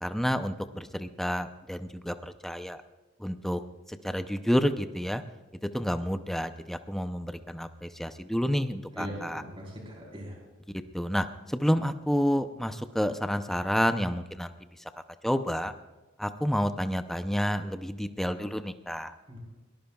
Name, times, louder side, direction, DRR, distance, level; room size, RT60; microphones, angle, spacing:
voice 1, 0.0-2.8 3.2-3.6 3.9-5.2 5.7-9.4 10.9-14.5 15.2-15.7 16.2-19.1, equal, ahead, 9 dB, 0.6 m, -29 dB
voice 2, 8.9-10.3 19.3-19.4, equal, 30° right, -2 dB, 4.1 m, -40 dB
22.0 x 19.0 x 2.4 m, 1.1 s
head